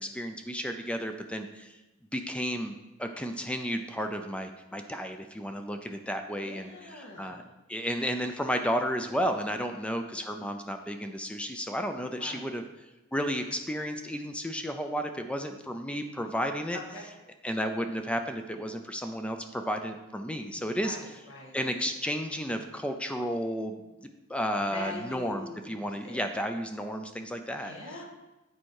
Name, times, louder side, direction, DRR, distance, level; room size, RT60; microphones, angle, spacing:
voice 1, 0.0-1.8 2.1-7.4 7.7-12.6 13.1-16.8 17.4-21.0 21.5-27.7, equal, 5° left, 6 dB, 0.4 m, -33 dB
voice 2, 6.3-7.5 12.1-12.5 16.7-17.0 20.7-21.6 24.7-26.3 27.5-28.0, left 2 dB, 65° left, -2 dB, 1.8 m, -43 dB
8.7 x 4.6 x 4.7 m, 1.0 s
head